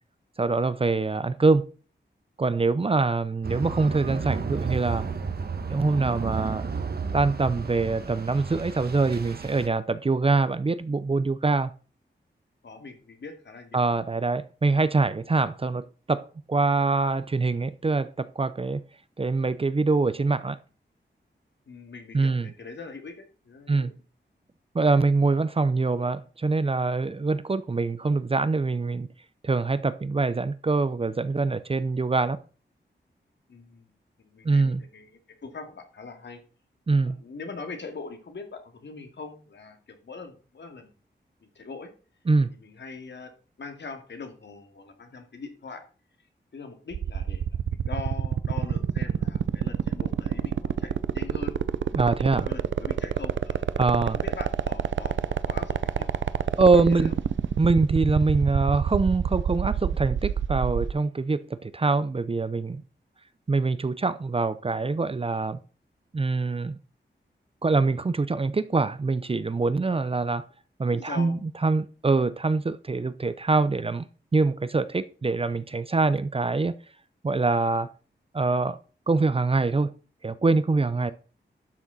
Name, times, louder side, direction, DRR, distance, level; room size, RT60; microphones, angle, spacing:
voice 1, 0.4-1.7 2.4-5.1 5.7-6.6 7.1-11.7 13.7-18.8 19.2-20.6 22.1-22.5 23.7-23.9 24.7-29.1 29.4-32.4 34.4-34.8 36.9-37.2 42.3-42.5 51.9-52.5 53.8-54.2 56.6-57.1 57.6-62.8 63.5-65.6 66.1-66.8 67.6-70.4 70.8-74.1 74.3-76.7 77.2-77.9 78.3-78.8 79.1-79.9 80.2-81.1, right 3 dB, 30° right, 0.6 m, -24 dB
sound 1, 3.4-9.7, right 5 dB, 55° right, 1.2 m, -32 dB
voice 2, 12.6-13.9 21.7-23.9 33.5-33.9 34.2-36.4 37.0-40.9 41.4-41.9 42.6-43.3 43.6-45.8 46.5-47.6 47.8-51.6 52.3-53.7 54.1-56.1 56.7-57.1 70.9-71.4 81.0-81.1, left 4 dB, 70° left, 2.3 m, -42 dB
sound 2, 46.9-60.9, right 8 dB, 80° right, 0.6 m, -26 dB
12.0 x 6.4 x 4.1 m
wide cardioid pair, 140°, 19 cm